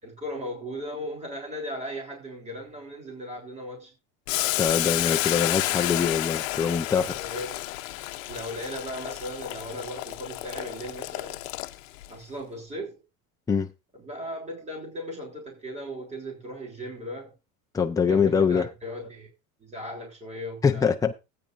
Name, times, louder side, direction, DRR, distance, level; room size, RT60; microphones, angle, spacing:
voice 1, 0.0-3.9 6.9-7.6 8.3-11.4 12.1-13.0 13.9-17.3 18.1-19.3 19.6-20.9, equal, 15° right, 3.5 m, -37 dB
Boiling, 4.3-12.1, left 18 dB, 80° left, 0.8 m, -30 dB
voice 2, 4.6-7.1 13.5-13.7 17.7-18.7 20.6-21.1, left 6 dB, 10° left, 0.6 m, -23 dB
15.5 x 8.9 x 2.6 m
supercardioid pair, 135°, 39 cm